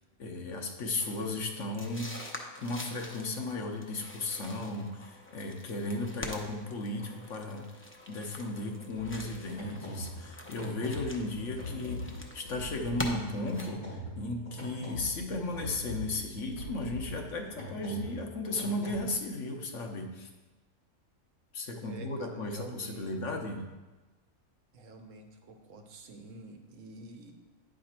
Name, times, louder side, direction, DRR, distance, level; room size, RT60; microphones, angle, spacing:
voice 1, 0.2-2.1 2.6-7.7 8.1-20.3 21.5-23.6, left 2 dB, 65° left, 3 dB, 1.2 m, -35 dB
sound 1, 1.0-13.7, left 1 dB, 15° left, 0.5 m, -45 dB
sound 2, 8.9-19.0, left 1 dB, 85° left, 3.2 m, -42 dB
voice 2, 21.8-23.2 24.7-27.3, right 3 dB, 70° right, 5 dB, 1.2 m, -48 dB
9.4 x 5.0 x 4.3 m, 1.2 s
omnidirectional pair, 1.4 m